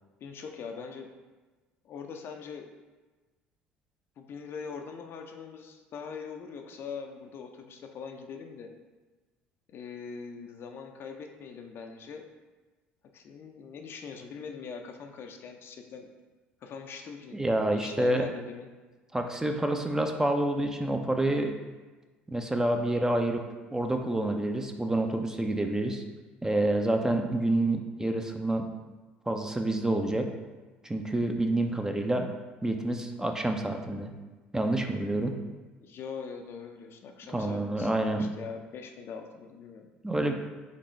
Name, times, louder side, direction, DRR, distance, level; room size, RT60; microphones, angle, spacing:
voice 1, 0.2-1.1 1.8-2.8 4.2-8.7 9.7-12.2 13.1-16.1 16.6-17.4 17.7-18.7 35.8-39.9 40.2-40.3, left 5 dB, 50° left, 4 dB, 0.5 m, -42 dB
voice 2, 17.3-18.2 19.1-21.5 22.3-23.4 23.7-26.0 26.4-28.7 29.3-30.3 30.8-32.3 32.6-34.1 34.5-35.4 37.3-38.3 40.0-40.3, right 1 dB, 10° right, 4 dB, 0.5 m, -28 dB
3.9 x 3.6 x 3.2 m, 1.3 s
hypercardioid pair, 60°, 5 cm